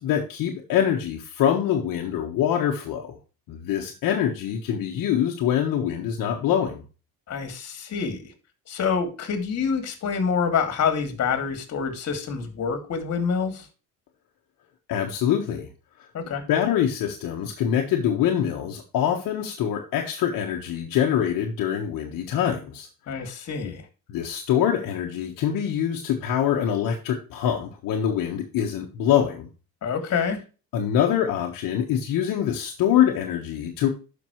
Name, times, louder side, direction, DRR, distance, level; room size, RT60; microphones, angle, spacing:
voice 1, 0.0-3.2 3.5-6.8 14.9-15.7 16.5-22.9 23.1-23.2 23.6-23.7 24.1-29.5 30.7-33.9, left 9 dB, 75° left, 1.5 m, -24 dB
voice 2, 7.3-8.3 8.7-13.7 16.1-16.4 23.1-23.8 29.8-30.4, left 6 dB, 50° left, 2.6 m, -27 dB
12.0 x 5.9 x 3.2 m
cardioid pair, 125°, 34 cm